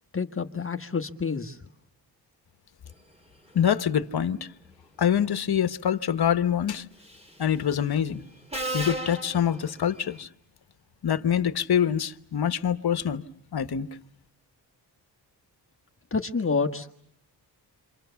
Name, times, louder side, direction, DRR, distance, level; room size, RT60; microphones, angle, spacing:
voice 1, 0.1-1.6 16.1-17.1, left 4 dB, 30° left, 1.5 m, -28 dB
voice 2, 3.5-4.5 5.0-6.8 7.4-8.2 8.7-10.3 11.0-13.2 13.5-13.9, left 9 dB, 60° left, 1.2 m, -25 dB
Subway metro underground, 7.0-7.4 8.5-10.2, right 1 dB, 15° right, 3.1 m, -34 dB
29.0 x 26.0 x 7.0 m
wide cardioid pair, 110°, 42 cm